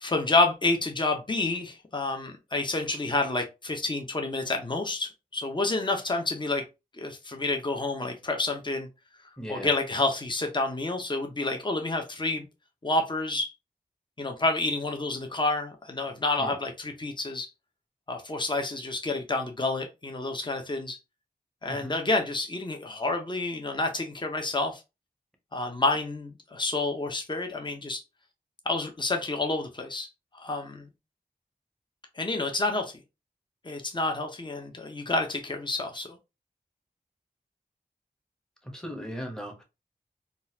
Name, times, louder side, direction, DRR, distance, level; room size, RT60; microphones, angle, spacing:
voice 1, 0.0-6.6 7.0-8.9 9.5-12.5 12.8-13.5 14.2-17.5 18.1-21.0 21.6-24.8 25.5-28.0 28.7-30.1 30.3-30.9 32.2-32.9 33.6-36.2, left 2 dB, 30° left, 0.7 m, -29 dB
voice 2, 9.4-9.7 16.4-16.6 21.7-21.9 38.6-39.6, equal, 5° left, 1.0 m, -37 dB
3.8 x 2.4 x 2.7 m
cardioid pair, 40°, 16 cm